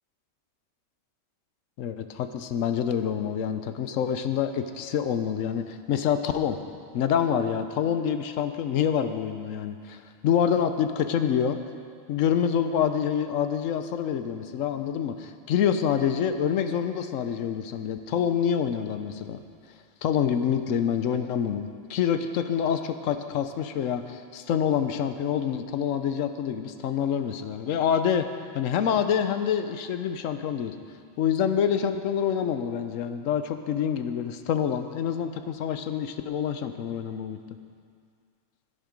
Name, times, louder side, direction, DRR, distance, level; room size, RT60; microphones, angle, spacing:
voice 1, 1.8-6.6 6.9-11.6 12.1-19.4 20.0-28.3 28.5-30.7 31.2-37.4, left 8 dB, 90° left, 9 dB, 1.0 m, -26 dB
11.0 x 10.0 x 5.2 m, 2.2 s
omnidirectional pair, 1.3 m